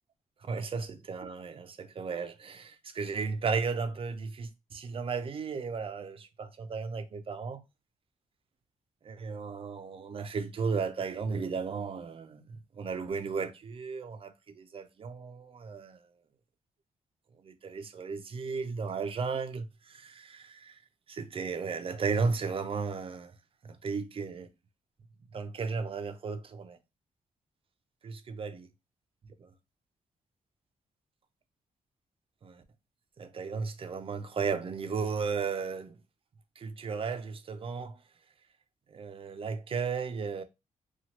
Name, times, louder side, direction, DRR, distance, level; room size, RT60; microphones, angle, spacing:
voice 1, 0.5-7.6 9.0-12.4 12.8-16.0 17.4-20.8 21.1-23.3 23.6-24.5 25.3-26.8 28.0-28.7 29.4-29.5 32.4-32.6 33.2-36.0 36.6-38.0 38.9-40.4, right 5 dB, 40° right, 0.4 m, -35 dB
2.8 x 2.3 x 2.9 m
cardioid pair, 110°, 14 cm